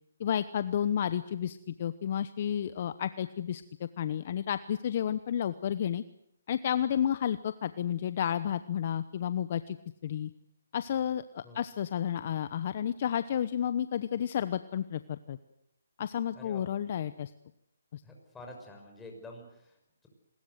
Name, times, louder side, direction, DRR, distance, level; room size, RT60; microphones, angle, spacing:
voice 1, 0.2-6.0 6.5-9.8 10.0-10.3 10.7-15.4 16.0-17.3 17.9-18.0, left 9 dB, 40° left, 13 dB, 0.9 m, -31 dB
voice 2, 16.3-16.7 18.0-20.1, left 1 dB, 5° left, 1 dB, 5.9 m, -48 dB
27.0 x 21.0 x 8.0 m, 0.77 s
hypercardioid pair, 155°, 0 cm